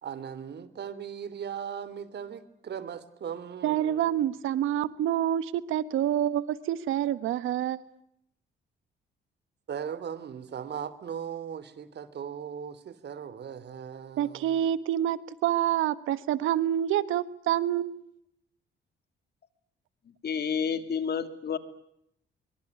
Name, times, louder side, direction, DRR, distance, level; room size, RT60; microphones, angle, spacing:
voice 1, 0.0-4.3 9.7-14.7, right 8 dB, 60° right, 16 dB, 3.1 m, -38 dB
voice 2, 3.6-7.8 14.2-18.1, right 11 dB, 85° right, 15 dB, 1.5 m, -27 dB
voice 3, 20.2-21.6, left 7 dB, 55° left, 11 dB, 3.1 m, -29 dB
24.5 x 24.5 x 9.6 m, 0.75 s
cardioid pair, 90°, 20 cm